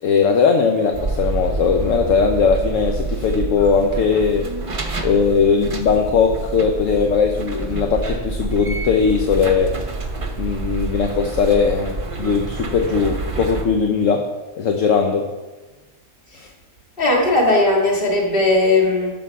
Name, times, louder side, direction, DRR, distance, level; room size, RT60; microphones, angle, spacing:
voice 1, 0.0-4.4 5.0-9.7 10.4-14.3 14.6-15.2 16.4-16.5, left 5 dB, 65° left, 4 dB, 1.1 m, -19 dB
sound 1, 0.9-13.6, right 3 dB, 30° right, 0.7 m, -27 dB
voice 2, 17.0-19.1, left 2 dB, 40° left, -2 dB, 2.2 m, -17 dB
12.5 x 6.1 x 4.8 m, 1.2 s
omnidirectional pair, 1.5 m